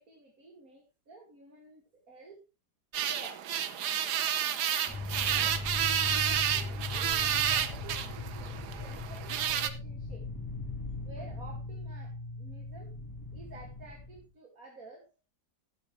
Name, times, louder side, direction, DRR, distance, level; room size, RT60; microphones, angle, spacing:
voice 1, 0.0-2.4 3.1-3.5 5.2-5.6 6.2-10.3 11.0-13.0 13.3-15.1, right 3 dB, 50° right, 0 dB, 2.6 m, -51 dB
sound 1, 2.9-9.7, right 9 dB, 70° right, 1.4 m, -30 dB
sound 2, 4.9-14.3, left 3 dB, 10° left, 1.8 m, -39 dB
12.5 x 12.0 x 3.2 m, 0.29 s
omnidirectional pair, 1.9 m